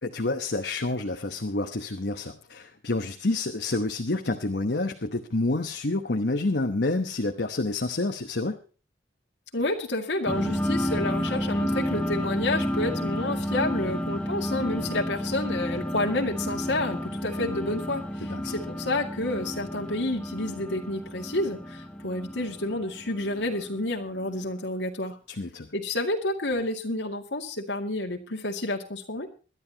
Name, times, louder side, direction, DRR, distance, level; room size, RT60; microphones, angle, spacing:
voice 1, 0.0-8.6 18.3-18.5 25.3-25.7, left 2 dB, 65° left, 5 dB, 1.1 m, -28 dB
voice 2, 9.5-25.2 25.7-29.3, left 2 dB, 80° left, 1 dB, 2.2 m, -30 dB
sound 1, 10.2-24.2, equal, 5° left, 1.3 m, -31 dB
22.0 x 12.0 x 2.9 m, 0.36 s
head